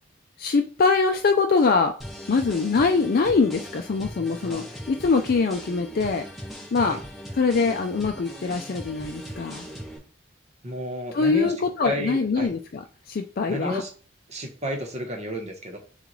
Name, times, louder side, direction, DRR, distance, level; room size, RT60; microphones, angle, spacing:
voice 1, 0.4-1.9 2.3-6.2 6.7-7.0 7.3-9.7 11.1-13.8, left 4 dB, 50° left, 6 dB, 0.4 m, -23 dB
sound 1, 2.0-10.0, equal, ahead, 1.3 m, -39 dB
voice 2, 10.6-11.5 11.8-12.5 13.5-13.9 14.3-15.8, equal, 35° right, 3 dB, 1.0 m, -31 dB
6.7 x 2.4 x 3.1 m, 0.41 s
head